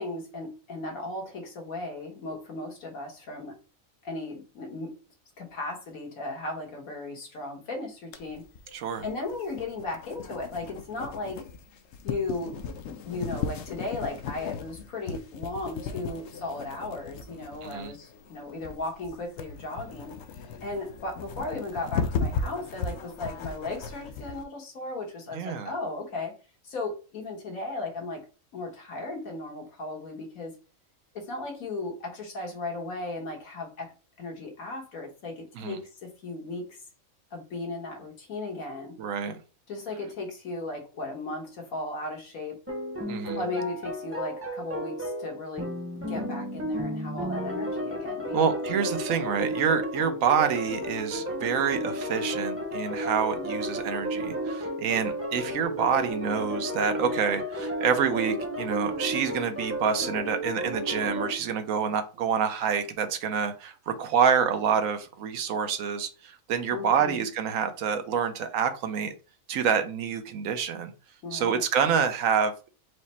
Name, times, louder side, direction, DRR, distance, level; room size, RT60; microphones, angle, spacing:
voice 1, 0.0-3.5 4.0-4.9 5.4-8.4 9.0-11.4 12.0-12.5 12.9-20.1 20.6-26.3 26.6-28.2 28.5-30.5 31.1-33.9 34.2-36.8 37.3-38.9 39.7-42.6 43.3-45.7 46.1-48.5 66.7-67.3 71.2-71.6, left 2 dB, 85° left, 1 dB, 1.7 m, -36 dB
sound 1, 8.1-24.4, left 5 dB, 65° left, 0.8 m, -36 dB
voice 2, 8.7-9.0 17.6-17.9 25.3-25.7 35.6-35.8 39.0-39.4 43.1-43.4 48.3-69.1 69.5-70.9 71.3-72.7, right 7 dB, 75° right, 8 dB, 1.1 m, -27 dB
sound 2, 42.7-61.3, equal, 15° right, 0.7 m, -32 dB
4.8 x 2.1 x 4.1 m, 0.34 s
omnidirectional pair, 1.4 m